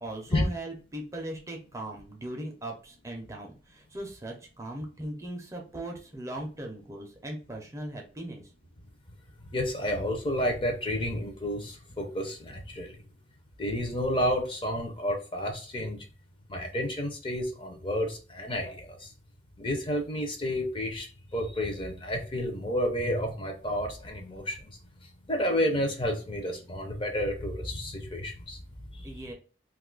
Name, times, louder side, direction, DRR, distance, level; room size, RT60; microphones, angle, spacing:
voice 1, 0.0-8.5 29.0-29.3, right 1 dB, 20° right, 2 dB, 0.5 m, -39 dB
voice 2, 9.4-13.0 13.6-16.1 16.5-19.1 19.6-28.6 28.9-29.1, equal, 30° left, 3 dB, 0.6 m, -31 dB
2.6 x 2.3 x 3.7 m, 0.37 s
head